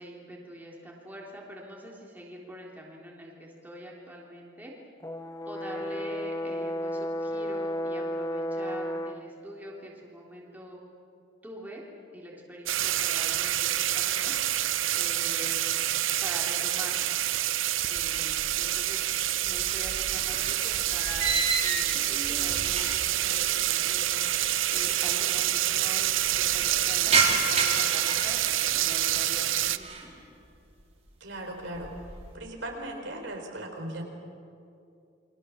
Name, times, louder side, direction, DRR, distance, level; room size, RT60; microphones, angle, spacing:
voice 1, 0.0-4.7 5.5-10.8 11.4-11.8 12.1-14.4 14.9-15.8 16.2-17.1 17.9-30.3, equal, 10° right, -3 dB, 3.6 m, -44 dB
Brass instrument, 5.0-9.3, equal, 15° left, 0.9 m, -33 dB
sound 1, 12.7-29.8, right 13 dB, 80° right, 0.8 m, -27 dB
sound 2, 18.0-18.8 19.1-23.2 23.5-23.6 24.5-24.6 24.7-24.8 25.1-25.6 26.0-29.2 29.6-30.1 30.6-31.0 31.4-32.3, right 4 dB, 35° right, 4.0 m, -31 dB
voice 2, 31.2-31.9 32.3-34.0, right 1 dB, 65° right, 2 dB, 4.3 m, -37 dB
29.5 x 24.0 x 7.4 m, 2.6 s
head